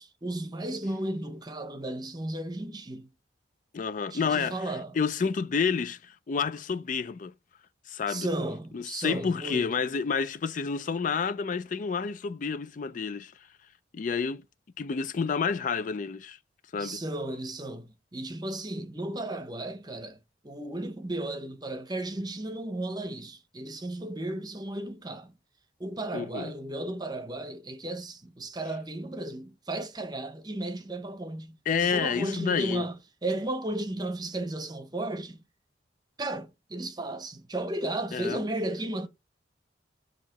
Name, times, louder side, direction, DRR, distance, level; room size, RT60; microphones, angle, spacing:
voice 1, 0.0-3.1 4.1-5.0 8.1-9.7 16.8-20.2 20.4-25.3 25.8-35.4 36.2-39.1, right 1 dB, 20° right, 0.8 m, -34 dB
voice 2, 3.7-7.3 7.9-8.3 8.7-13.3 13.9-14.4 14.8-16.4 16.7-17.0 26.1-26.5 31.7-32.8 38.1-38.4, left 5 dB, 45° left, 0.4 m, -29 dB
7.4 x 2.9 x 5.7 m
head